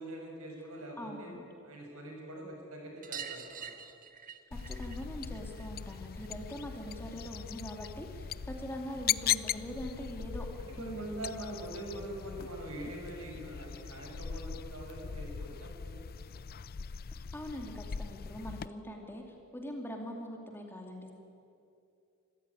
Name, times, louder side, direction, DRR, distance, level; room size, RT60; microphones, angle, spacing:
voice 1, 0.0-1.3 1.6-3.7 10.8-16.1, right 1 dB, 70° right, 0 dB, 6.7 m, -44 dB
voice 2, 1.0-1.4 4.5-11.7 17.1-21.1, equal, 10° left, 2 dB, 2.5 m, -43 dB
sound 1, 3.0-8.1 8.4-9.6 10.9-11.0 11.2-11.3 11.6-11.7 13.0-13.1 13.4-13.5 13.8-13.9 15.2-15.3 16.0-16.1, right 8 dB, 40° right, 1.3 m, -48 dB
sound 2, 4.5-18.7, left 8 dB, 45° left, 0.4 m, -39 dB
26.0 x 14.5 x 9.8 m, 2.6 s
head